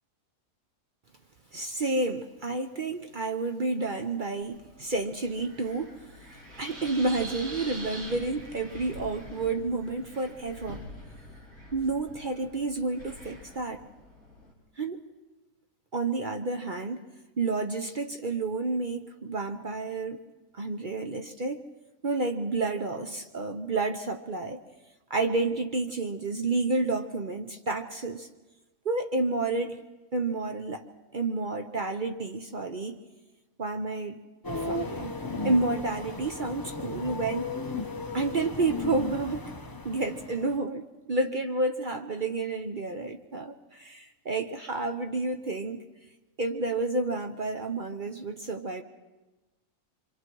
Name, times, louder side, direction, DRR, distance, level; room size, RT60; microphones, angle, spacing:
voice 1, 1.5-10.9 11.7-13.9 14.8-15.0 15.9-17.0 17.4-20.2 20.5-21.6 22.0-24.6 25.1-28.3 28.8-29.8 30.1-30.8 31.1-33.0 33.6-34.2 34.5-35.2 35.4-37.5 38.1-39.5 39.8-45.9 46.4-48.8, right 3 dB, 45° right, 5 dB, 0.7 m, -30 dB
Wind, 4.4-14.5, equal, 25° right, 5.6 m, -45 dB
sound 1, 34.4-40.6, left 3 dB, 25° left, 0.5 m, -35 dB
26.0 x 25.0 x 4.6 m, 1.1 s
omnidirectional pair, 1.7 m